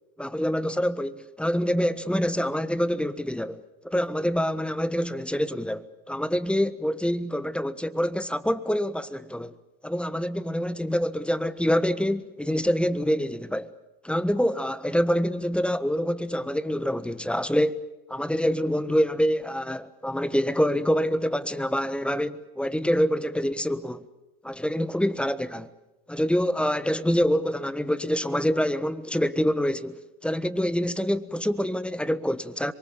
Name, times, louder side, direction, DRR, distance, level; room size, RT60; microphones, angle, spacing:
voice 1, 0.2-9.5 9.8-13.7 14.0-17.8 18.1-24.0 24.4-25.7 26.1-32.7, equal, 5° left, 1.3 m, -26 dB
26.5 x 23.5 x 7.3 m
supercardioid pair, 95°, 32 cm